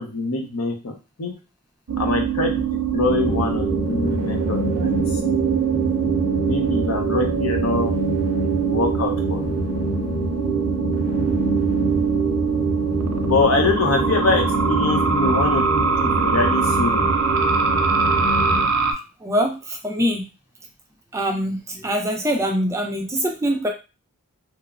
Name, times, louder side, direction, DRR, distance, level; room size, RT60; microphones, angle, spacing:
voice 1, 0.0-1.3 2.0-2.6 2.9-5.0 5.2-5.3 6.4-7.9 8.6-9.6 13.2-17.1, left 3 dB, 75° left, 3 dB, 0.7 m, -24 dB
sound 1, 1.9-18.9, right 6 dB, 75° right, 0.5 m, -23 dB
sound 2, 3.1-18.6, right 1 dB, 45° left, 0.7 m, -26 dB
voice 2, 19.2-20.3 21.1-23.7, equal, 15° right, 2 dB, 0.3 m, -23 dB
2.9 x 2.0 x 2.4 m, 0.30 s
head